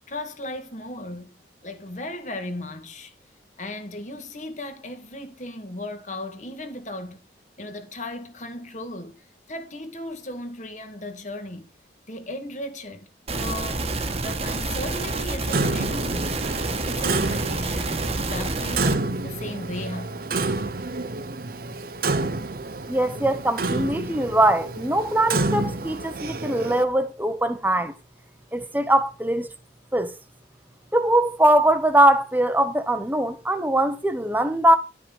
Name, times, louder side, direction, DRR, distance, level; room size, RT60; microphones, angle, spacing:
voice 1, 0.1-1.3 1.6-3.1 3.6-7.2 7.6-11.7 12.1-13.1 13.4-13.9 14.2-16.5 16.8-19.0 19.2-20.6, left 1 dB, 40° left, 1.9 m, -36 dB
sound 1, 13.3-19.0, right 3 dB, 35° right, 1.5 m, -28 dB
Clock, 15.5-26.8, right 3 dB, 55° right, 0.9 m, -29 dB
voice 2, 22.9-27.9 28.5-29.5 29.9-30.1 30.9-34.8, right 1 dB, 10° right, 1.1 m, -21 dB
12.0 x 6.0 x 5.4 m
head